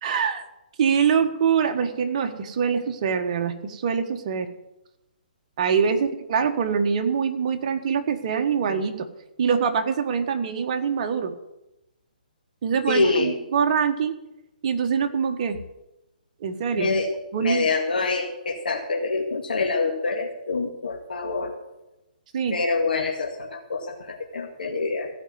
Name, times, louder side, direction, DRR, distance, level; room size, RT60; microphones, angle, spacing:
voice 1, 0.0-0.4 0.8-4.5 5.6-9.1 9.4-11.3 12.6-14.1 14.6-15.6 16.4-16.9 17.3-17.7 22.3-22.6, right 6 dB, 45° right, 6 dB, 1.4 m, -24 dB
voice 2, 12.9-13.3 16.8-17.1 17.4-21.5 22.5-25.1, left 3 dB, 75° left, 1 dB, 2.1 m, -26 dB
16.0 x 5.4 x 9.4 m, 0.94 s
hypercardioid pair, 145°, 5 cm